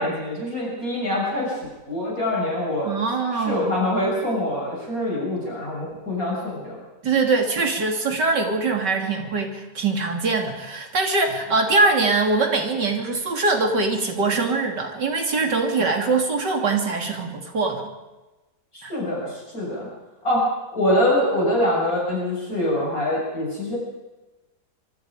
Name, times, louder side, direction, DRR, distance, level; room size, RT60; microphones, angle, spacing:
voice 1, 0.0-1.6 1.9-2.9 3.3-6.8 18.7-19.9 20.2-20.4 20.7-23.8, left 1 dB, 50° left, -4 dB, 7.6 m, -24 dB
voice 2, 2.8-3.7 7.0-17.9 18.8-18.9, right 3 dB, 75° right, 3 dB, 3.5 m, -22 dB
26.0 x 24.0 x 5.1 m, 1.1 s
omnidirectional pair, 1.9 m